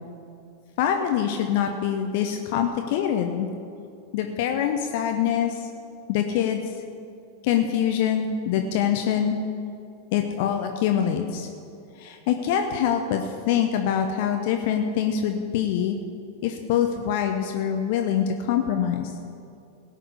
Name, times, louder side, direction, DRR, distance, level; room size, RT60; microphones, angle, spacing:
voice 1, 0.8-3.5 4.1-5.7 6.1-6.6 7.4-9.4 10.1-11.5 12.0-16.0 16.4-19.2, left 9 dB, 50° left, 4 dB, 0.9 m, -24 dB
17.5 x 6.2 x 8.3 m, 2.5 s
figure-of-eight pair, 90°, 0 cm